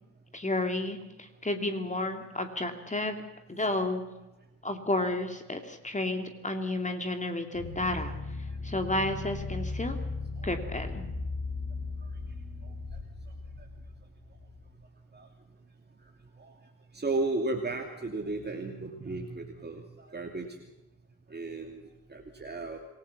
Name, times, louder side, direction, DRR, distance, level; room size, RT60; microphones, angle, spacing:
voice 1, 0.3-3.2 3.5-4.0 4.6-10.0 10.4-11.1, left 2 dB, 15° left, 6 dB, 2.7 m, -32 dB
sound 1, 7.5-14.7, left 3 dB, 40° left, 6.8 m, -37 dB
voice 2, 10.4-10.8 12.6-12.7 13.6-13.7 15.1-15.3 16.4-16.5 16.9-20.5 21.3-22.8, right 2 dB, 25° right, 3 dB, 2.8 m, -35 dB
26.0 x 19.0 x 7.2 m, 0.97 s
figure-of-eight pair, 40°, 43 cm